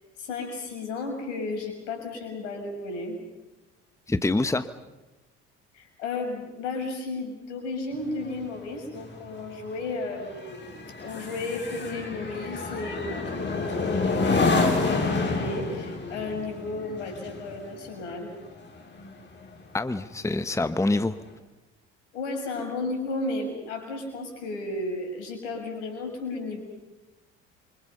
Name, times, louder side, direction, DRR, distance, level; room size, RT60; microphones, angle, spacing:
voice 1, 0.2-3.2 5.7-10.7 11.0-18.3 22.1-26.6, left 2 dB, 80° left, 4 dB, 6.3 m, -33 dB
voice 2, 4.1-4.7 19.7-21.2, left 2 dB, 10° left, 12 dB, 1.2 m, -25 dB
sound 1, 7.9-19.6 20.0-20.3, left 3 dB, 30° left, 6.2 m, -29 dB
27.5 x 25.5 x 5.6 m, 1.1 s
hypercardioid pair, 60°, 36 cm